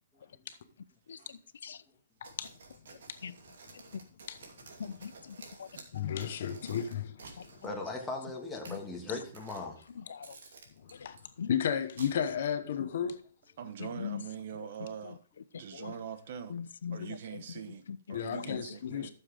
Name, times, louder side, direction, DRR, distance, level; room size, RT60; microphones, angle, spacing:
sound 1, 2.2-7.7 8.4-8.8 9.3-9.9 10.2-11.2 12.0-12.5, right 4 dB, 70° right, 2.5 m, -52 dB
voice 1, 4.8-5.7 8.7-8.8 10.1-10.4 11.4-11.5 14.0-14.2 15.7-15.9 16.5-17.1, left 7 dB, 80° left, 0.5 m, -40 dB
voice 2, 5.9-7.5 10.8-11.2 11.5-13.2 18.1-19.1, left 8 dB, 50° left, 1.0 m, -33 dB
voice 3, 7.5-9.8, left 3 dB, 5° left, 1.5 m, -39 dB
voice 4, 13.6-15.2 15.6-16.6 16.9-19.1, right 8 dB, 45° right, 1.0 m, -43 dB
12.5 x 7.1 x 3.5 m
hypercardioid pair, 175°, 0 cm